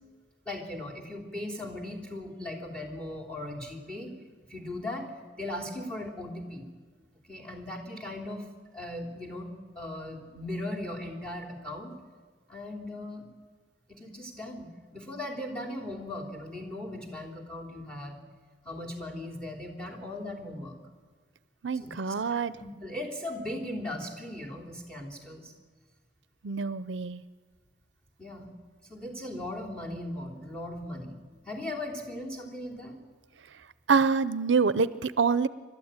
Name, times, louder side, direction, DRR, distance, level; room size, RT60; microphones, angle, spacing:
voice 1, 0.4-4.1 4.5-5.1 5.4-6.7 7.3-8.5 8.7-11.9 12.5-13.3 13.9-18.2 18.6-20.8 21.8-22.1 22.6-25.5 28.2-28.5 28.9-33.0, left 1 dB, 5° left, 2 dB, 3.2 m, -38 dB
voice 2, 21.6-22.6 26.4-27.2 33.9-35.5, right 5 dB, 90° right, 16 dB, 0.6 m, -26 dB
29.0 x 13.0 x 8.9 m, 1.5 s
head